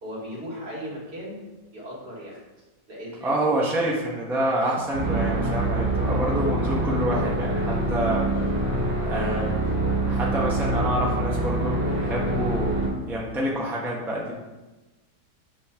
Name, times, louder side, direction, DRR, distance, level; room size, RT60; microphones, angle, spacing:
voice 1, 0.0-1.4 1.7-2.4 2.9-3.5 4.6-4.8 9.3-9.6, equal, 65° right, -6 dB, 2.8 m, -37 dB
voice 2, 3.2-8.3 9.0-9.5 10.0-12.7 13.1-14.3, right 1 dB, ahead, -4 dB, 1.0 m, -27 dB
sound 1, 4.9-12.9, right 2 dB, 90° right, 2.4 m, -25 dB
7.9 x 3.2 x 6.0 m, 1.1 s
omnidirectional pair, 1.8 m